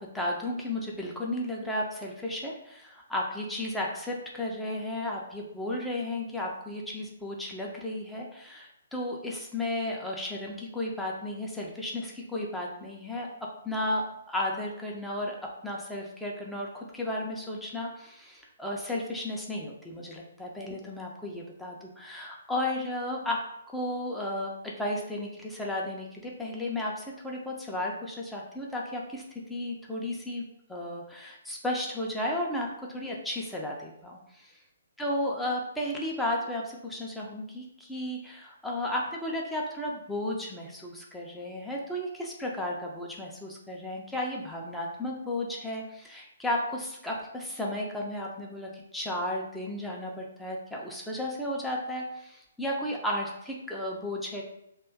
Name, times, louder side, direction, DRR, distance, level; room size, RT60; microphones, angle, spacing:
voice 1, 0.0-30.4 30.7-34.5 35.0-54.4, left 1 dB, 5° left, -3 dB, 0.4 m, -34 dB
2.4 x 2.2 x 3.4 m, 0.79 s
figure-of-eight pair, 130°, 0 cm